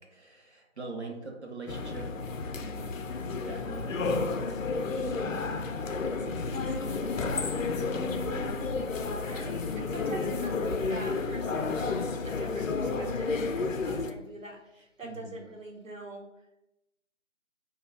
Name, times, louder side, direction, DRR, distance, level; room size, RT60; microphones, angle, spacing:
voice 1, 0.0-2.1 2.6-4.3 4.8-5.7 6.2-7.1 7.8-8.3 8.9-9.3 10.1-10.2 15.0-15.4, right 2 dB, 60° right, 1 dB, 0.7 m, -44 dB
sound 1, 1.7-14.1, left 4 dB, 85° left, 0.5 m, -31 dB
sound 2, 6.4-13.3 13.6-13.7, right 2 dB, ahead, 0.4 m, -49 dB
voice 2, 9.2-16.2, right 1 dB, 85° right, 0 dB, 0.9 m, -44 dB
2.9 x 2.2 x 3.3 m, 0.87 s
figure-of-eight pair, 175°, 38 cm